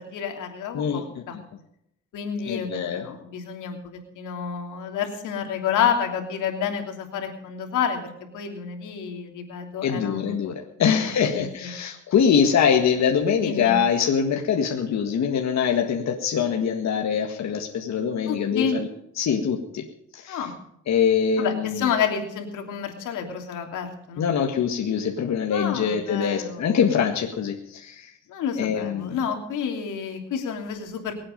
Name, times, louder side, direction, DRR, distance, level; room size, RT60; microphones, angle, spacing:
voice 1, 0.0-1.4 2.1-8.1 8.3-10.5 10.8-11.7 13.4-13.8 18.3-18.8 20.3-20.5 21.4-24.3 25.5-26.6 28.3-31.1, left 7 dB, 85° left, 4 dB, 3.0 m, -29 dB
voice 2, 2.5-3.0 9.8-10.5 10.8-18.9 19.2-19.8 20.1-20.4 20.9-21.9 24.2-28.1 28.6-29.2, left 7 dB, 65° left, 2 dB, 1.8 m, -23 dB
23.0 x 8.7 x 5.2 m, 0.75 s
cardioid pair, 90°, 30 cm